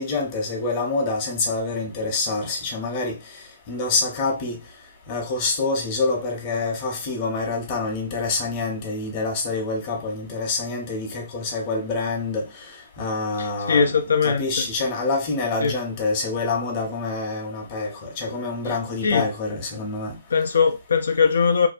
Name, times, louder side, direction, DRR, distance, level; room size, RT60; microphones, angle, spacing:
voice 1, 0.0-3.2 3.7-4.6 5.1-12.4 13.0-20.2, left 3 dB, 25° left, 0.8 m, -26 dB
voice 2, 13.4-14.7 15.6-15.7 19.0-19.3 20.3-21.7, left 5 dB, 80° left, 0.4 m, -20 dB
2.7 x 2.2 x 2.4 m
hypercardioid pair, 160°, 0 cm